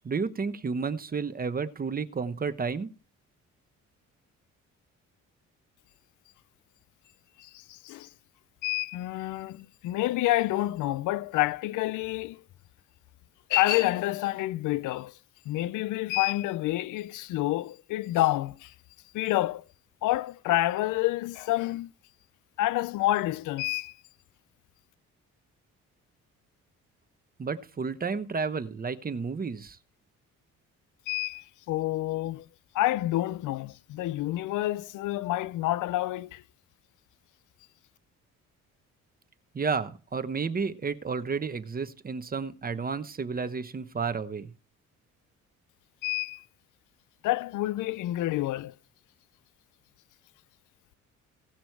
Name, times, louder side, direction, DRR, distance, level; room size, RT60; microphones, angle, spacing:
voice 1, 0.0-2.9 27.4-29.8 39.5-44.5, right 5 dB, 30° right, 1.0 m, -31 dB
voice 2, 7.4-8.1 8.6-12.4 13.5-15.1 15.5-18.7 19.1-19.6 20.0-21.9 22.6-24.0 31.1-32.5 32.7-36.4 46.0-46.4 47.2-48.7, left 16 dB, 85° left, 0.5 m, -28 dB
17.5 x 6.1 x 4.7 m
cardioid pair, 90°, 30 cm